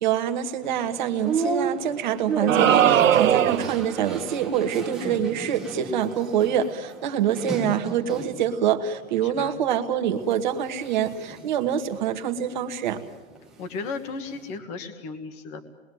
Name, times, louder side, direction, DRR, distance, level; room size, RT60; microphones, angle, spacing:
voice 1, 0.0-13.0, right 9 dB, 35° right, 6 dB, 1.7 m, -25 dB
sound 1, 0.6-8.5 9.0-9.7 10.2-13.1 13.4-14.6, right 4 dB, ahead, 1.3 m, -34 dB
sound 2, 2.5-3.8, right 10 dB, 70° right, 1.4 m, -19 dB
voice 2, 9.2-9.6 13.6-15.6, left 4 dB, 15° left, 8 dB, 1.4 m, -35 dB
28.5 x 21.5 x 9.4 m, 1.3 s
hypercardioid pair, 180°, 40 cm